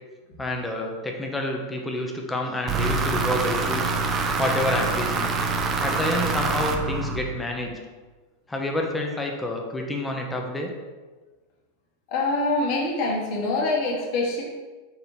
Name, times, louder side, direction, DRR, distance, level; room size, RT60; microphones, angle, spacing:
voice 1, 0.4-4.0 4.4-5.3 5.8-7.8 8.5-10.7, left 1 dB, 10° left, 1 dB, 1.0 m, -28 dB
sound 1, 2.7-7.6, right 4 dB, 30° right, 0.7 m, -25 dB
voice 2, 12.1-14.4, left 2 dB, 50° left, -2 dB, 1.5 m, -25 dB
5.4 x 3.9 x 4.5 m, 1.3 s
figure-of-eight pair, 85°, 0 cm